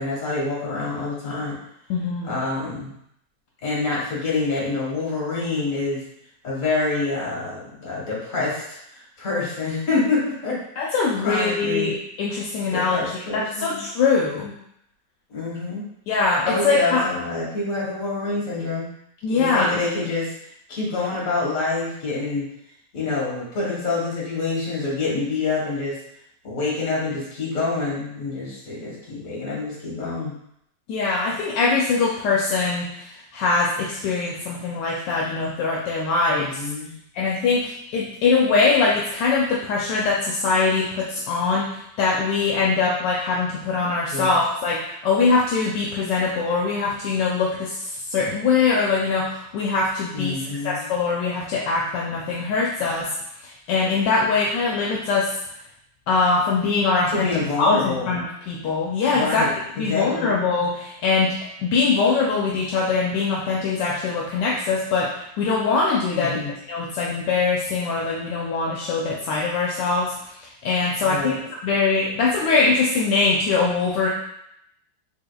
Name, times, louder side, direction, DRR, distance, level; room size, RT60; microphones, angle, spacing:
voice 1, 0.0-1.6 2.2-2.9 3.6-6.0 6.4-8.6 8.9-10.6 10.9-11.9 12.7-13.8 15.3-15.8 16.4-18.9 19.3-20.3 20.7-22.5 22.9-26.0 26.4-30.4 36.3-36.9 44.1-44.4 50.1-50.8 57.1-58.1 59.1-59.5 59.8-60.4 66.1-66.5 71.1-71.4, left 3 dB, 50° left, -5 dB, 1.5 m, -26 dB
voice 2, 1.9-2.4 10.8-13.0 13.3-14.5 16.1-17.0 19.2-19.8 30.9-36.6 37.1-53.1 53.4-55.3 56.1-57.3 57.6-59.4 59.8-61.3 61.6-66.4 66.7-74.1, left 4 dB, 80° left, -3 dB, 1.2 m, -22 dB
3.7 x 3.5 x 2.2 m, 0.75 s
omnidirectional pair, 1.9 m